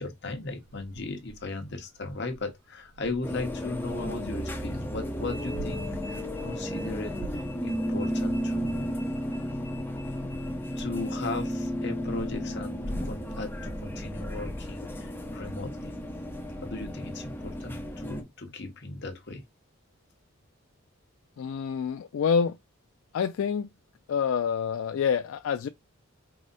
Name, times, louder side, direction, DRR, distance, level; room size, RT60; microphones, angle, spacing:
voice 1, 0.0-9.0 9.2-9.4 10.8-15.9 16.6-19.4, left 3 dB, 55° left, 1.1 m, -37 dB
sound 1, 0.6-4.1 5.0-7.4, right 5 dB, 90° right, 0.4 m, -46 dB
sound 2, 3.2-18.2, equal, 10° left, 0.7 m, -33 dB
voice 2, 21.4-22.6 23.1-23.7 24.1-25.7, left 6 dB, 75° left, 0.3 m, -27 dB
4.8 x 2.1 x 4.0 m
head